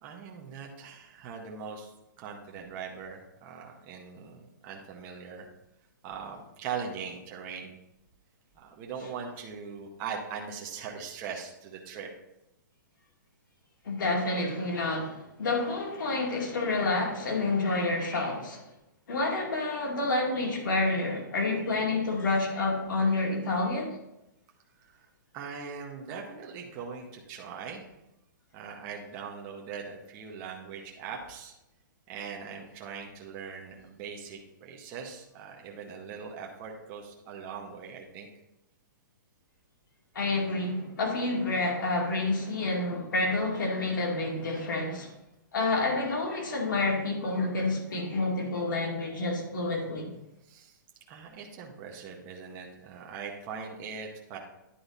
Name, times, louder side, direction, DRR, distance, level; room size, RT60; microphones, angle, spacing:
voice 1, 0.0-5.5 6.0-7.7 8.6-12.1 24.8-25.1 25.3-27.9 28.5-31.5 32.1-38.3 50.4-50.8 51.1-54.4, right 6 dB, 20° right, 0 dB, 0.7 m, -41 dB
voice 2, 13.8-18.6 19.1-23.9 40.1-45.1 45.5-50.1, left 2 dB, 75° left, 0 dB, 2.3 m, -29 dB
10.0 x 4.6 x 4.0 m, 0.88 s
hypercardioid pair, 175°, 11 cm